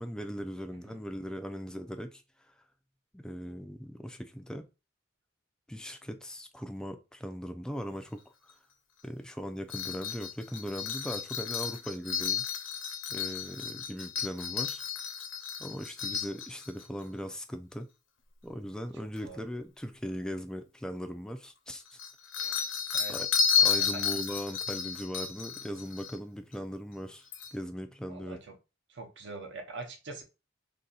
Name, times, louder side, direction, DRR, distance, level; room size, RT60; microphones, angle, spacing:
voice 1, 0.0-2.2 3.1-4.7 5.7-8.2 9.0-12.4 13.1-14.8 15.6-17.9 18.4-22.0 22.4-22.7 23.1-23.3 23.6-27.3 27.5-28.4, equal, 5° left, 0.3 m, -39 dB
sound 1, 9.7-16.8 19.2-19.3 21.9-26.2 26.5-26.6 27.3-27.5, left 7 dB, 70° left, 0.7 m, -32 dB
voice 2, 18.9-19.4 22.9-23.2 23.8-24.0 28.1-28.5 28.9-30.2, right 3 dB, 65° right, 0.8 m, -44 dB
2.7 x 2.6 x 4.0 m
head